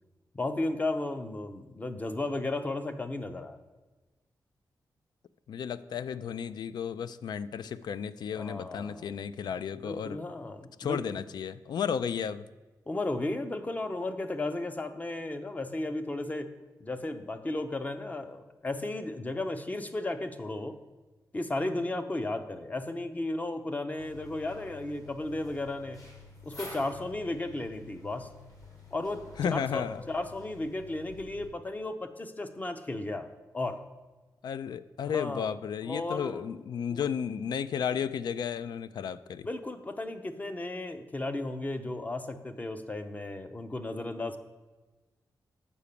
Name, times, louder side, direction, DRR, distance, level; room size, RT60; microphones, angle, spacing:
voice 1, 0.3-3.6 8.4-9.1 9.8-11.2 12.9-16.5 16.8-20.8 21.3-26.0 26.4-28.3 28.9-33.3 33.5-33.8 35.0-35.4 35.8-36.4 36.9-37.0 39.4-44.4, left 2 dB, 20° left, 9 dB, 0.6 m, -34 dB
voice 2, 5.5-10.2 10.8-12.4 29.4-30.0 34.4-39.5, left 7 dB, 75° left, 15 dB, 0.3 m, -33 dB
sound 1, 24.0-31.5, left 3 dB, 55° left, 2.6 m, -50 dB
7.0 x 5.9 x 6.6 m, 1.2 s
wide cardioid pair, 140°, 7 cm